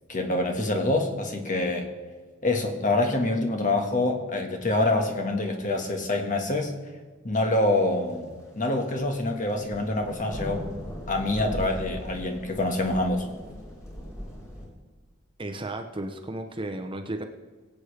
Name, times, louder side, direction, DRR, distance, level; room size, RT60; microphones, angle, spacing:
voice 1, 0.1-1.9 2.4-6.7 7.2-10.7 11.1-13.2, left 2 dB, 40° left, 3 dB, 1.6 m, -26 dB
sound 1, 8.3-8.5 8.7-14.7, equal, 15° left, 3.9 m, -38 dB
voice 2, 15.4-17.2, right 1 dB, 25° right, 6 dB, 0.8 m, -34 dB
22.0 x 8.3 x 3.4 m, 1.4 s
head